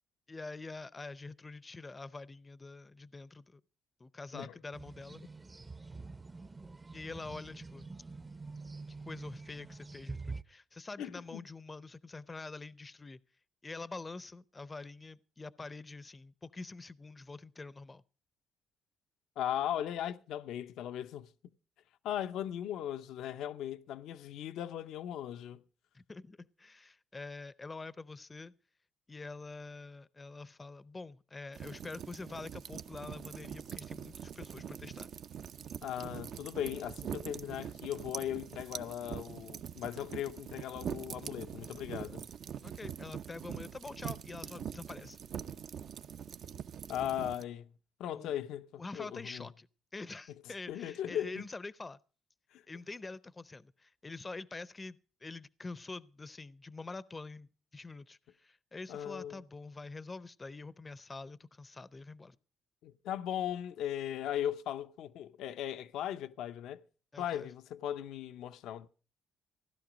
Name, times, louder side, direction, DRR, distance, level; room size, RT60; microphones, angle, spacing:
voice 1, 0.3-3.6 4.0-5.2 6.9-7.9 9.1-13.2 13.6-18.0 25.9-28.5 29.1-35.1 42.6-45.2 48.1-48.3 48.8-49.7 49.9-52.0 52.7-62.4 67.1-67.5, left 3 dB, 25° left, 0.6 m, -46 dB
sound 1, 4.7-10.4, right 3 dB, 25° right, 0.6 m, -46 dB
voice 2, 11.0-11.4 19.4-21.3 22.0-25.6 35.8-42.3 46.9-47.7 48.0-49.5 50.7-51.5 52.5-52.6 58.9-59.4 62.8-66.8 67.2-68.9, left 11 dB, 85° left, 0.7 m, -38 dB
sound 2, 31.5-47.4, right 8 dB, 65° right, 0.6 m, -44 dB
16.0 x 11.5 x 5.0 m
cardioid pair, 90°, 0 cm